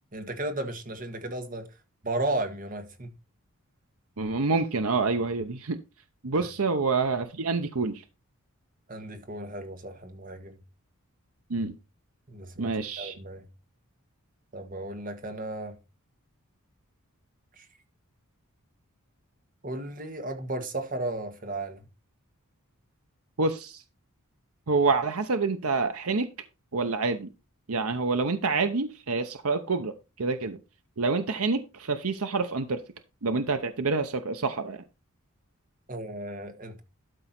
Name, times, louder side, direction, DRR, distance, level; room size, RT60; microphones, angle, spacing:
voice 1, 0.1-1.7 2.0-3.1 8.9-10.6 12.3-13.4 14.5-15.8 17.6-17.7 19.6-21.9 35.9-36.8, right 2 dB, 40° right, 1.7 m, -34 dB
voice 2, 4.2-5.8 6.2-8.0 11.5-11.7 12.6-13.1 23.4-23.8 24.7-26.3 26.7-27.3 27.7-29.9 30.2-30.6 31.0-32.8 33.2-34.8, right 4 dB, 80° right, 0.9 m, -27 dB
12.5 x 5.1 x 4.3 m
head